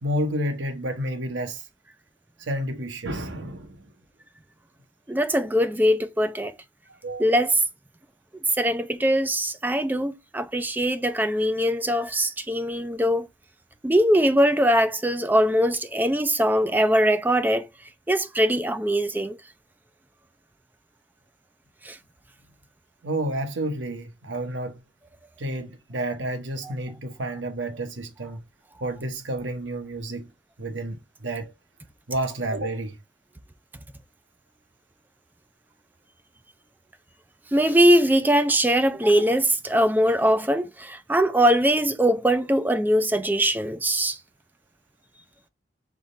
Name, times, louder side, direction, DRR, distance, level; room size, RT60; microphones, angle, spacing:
voice 1, 0.0-1.7 2.4-3.9 7.0-7.4 23.0-24.8 25.4-28.4 28.8-30.3 30.6-31.5 32.1-33.0, right 1 dB, 75° right, 1.0 m, -30 dB
voice 2, 5.1-6.5 7.2-7.6 8.6-13.3 13.8-17.7 18.1-19.4 21.8-22.0 37.5-44.2, equal, 10° right, 0.4 m, -21 dB
3.6 x 3.2 x 3.9 m
head